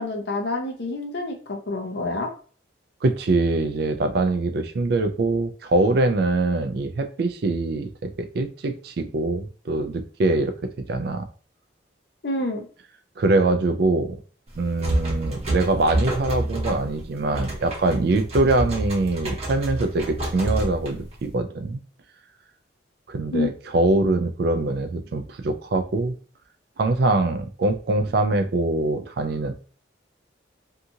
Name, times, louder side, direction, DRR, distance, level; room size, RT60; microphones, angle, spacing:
voice 1, 0.0-2.3 12.2-12.7 23.3-23.5, left 2 dB, 60° left, 3 dB, 0.6 m, -27 dB
voice 2, 3.0-10.5 10.9-11.3 13.2-14.1 14.6-21.8 23.1-26.1 26.8-29.5, right 2 dB, 55° right, 8 dB, 0.3 m, -23 dB
sound 1, 14.5-21.3, right 1 dB, 30° right, 0.9 m, -28 dB
2.7 x 2.4 x 2.7 m, 0.39 s
head